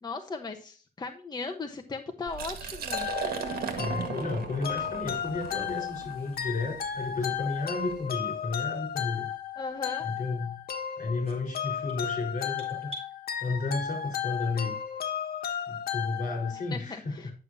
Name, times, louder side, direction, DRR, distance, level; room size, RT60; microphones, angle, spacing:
voice 1, 0.0-3.1 9.6-10.1 16.7-17.3, left 4 dB, 25° left, 4 dB, 1.1 m, -37 dB
Liquid, 2.3-8.0, right 7 dB, 80° right, 1.8 m, -37 dB
sound 1, 2.9-16.7, left 9 dB, 80° left, 1.3 m, -34 dB
voice 2, 3.8-9.3 10.0-10.6 11.0-12.9 13.4-14.8 15.7-17.3, left 3 dB, 55° left, 1 dB, 4.7 m, -32 dB
sound 2, 11.2-13.1, equal, 40° right, 4.5 m, -45 dB
11.0 x 7.0 x 2.8 m, 0.37 s
cardioid pair, 110°, 16 cm